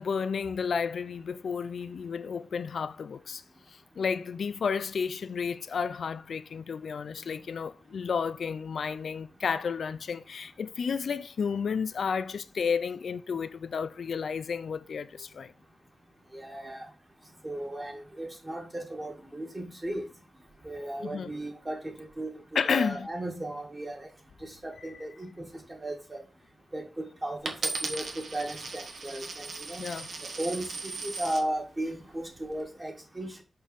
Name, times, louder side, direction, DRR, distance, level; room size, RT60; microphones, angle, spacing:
voice 1, 0.0-3.4 3.7-15.5 21.0-21.3 22.5-23.1 24.8-24.9 29.8-30.1, left 6 dB, 80° left, 0.5 m, -32 dB
voice 2, 16.3-16.9 17.4-20.1 20.6-24.1 24.4-26.2 26.7-29.8 30.4-33.4, right 1 dB, 20° right, 1.6 m, -36 dB
Coin (dropping), 27.5-31.5 32.2-32.6, right 3 dB, 70° right, 1.2 m, -37 dB
6.1 x 4.4 x 5.2 m
wide cardioid pair, 175°, 0 cm